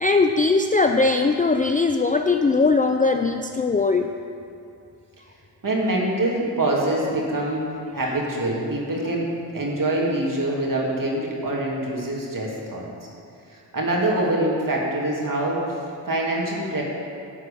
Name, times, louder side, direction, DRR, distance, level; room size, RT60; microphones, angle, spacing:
voice 1, 0.0-4.1 7.9-8.2, left 3 dB, 20° left, 5 dB, 0.4 m, -20 dB
voice 2, 5.6-7.7 7.9-12.9 13.5-15.6 16.0-16.8, right 1 dB, 45° right, -3 dB, 2.6 m, -25 dB
11.5 x 4.5 x 6.9 m, 2.5 s
supercardioid pair, 50°, 47 cm